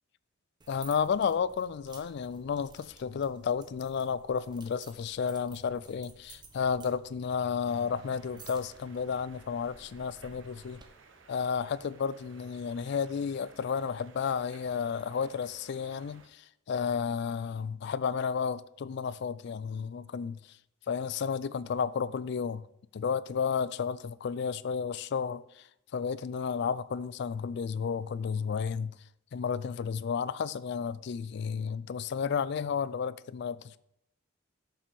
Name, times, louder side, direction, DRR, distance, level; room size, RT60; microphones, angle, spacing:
sound 1, 0.6-10.9, right 4 dB, 20° right, 0.8 m, -55 dB
voice 1, 0.7-10.8 11.3-16.4 16.7-20.4 20.9-22.7 22.9-25.4 25.9-28.9 29.3-33.8, left 6 dB, 60° left, 0.3 m, -32 dB
sound 2, 7.7-16.3, right 4 dB, 70° right, 1.0 m, -57 dB
6.8 x 5.8 x 5.3 m
head